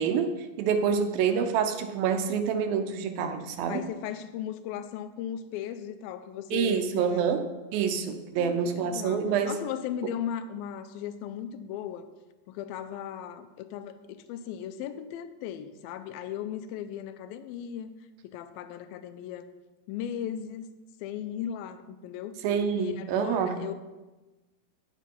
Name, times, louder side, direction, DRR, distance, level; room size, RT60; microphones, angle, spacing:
voice 1, 0.0-3.8 6.5-7.5 7.7-9.6 22.4-23.6, right 7 dB, 80° right, 7 dB, 2.4 m, -27 dB
voice 2, 3.7-7.4 8.4-12.1 12.5-17.9 18.2-19.5 19.9-20.7 21.0-22.4 22.8-23.7, left 9 dB, 85° left, 11 dB, 2.4 m, -37 dB
10.0 x 7.5 x 5.4 m, 1.1 s
omnidirectional pair, 4.2 m